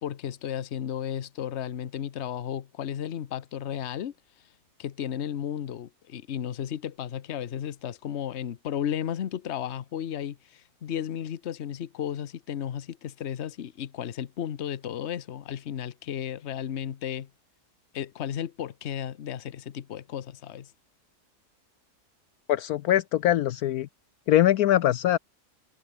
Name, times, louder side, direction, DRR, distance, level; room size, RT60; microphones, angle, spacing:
voice 1, 0.0-4.1 4.8-17.3 17.9-20.7, left 9 dB, 50° left, 1.1 m, -34 dB
voice 2, 22.5-23.9 24.3-25.2, left 12 dB, 75° left, 1.1 m, -22 dB
omnidirectional pair, 1.7 m